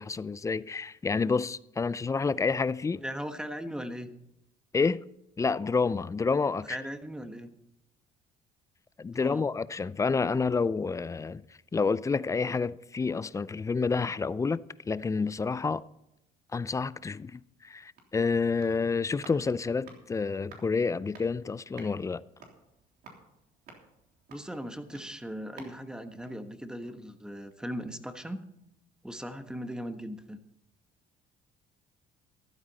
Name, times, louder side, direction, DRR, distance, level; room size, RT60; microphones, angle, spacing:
voice 1, 0.0-3.0 4.7-5.0 5.4-6.8 9.0-11.4 11.7-14.6 14.9-15.8 16.5-22.2, left 4 dB, 20° left, 0.4 m, -29 dB
voice 2, 3.0-4.1 6.7-7.5 9.2-9.4 24.3-28.4 29.0-30.4, equal, 5° right, 1.2 m, -38 dB
sound 1, 17.9-27.2 27.5-27.6, right 4 dB, 70° right, 3.4 m, -54 dB
14.0 x 12.0 x 4.1 m
cardioid pair, 110°, 17 cm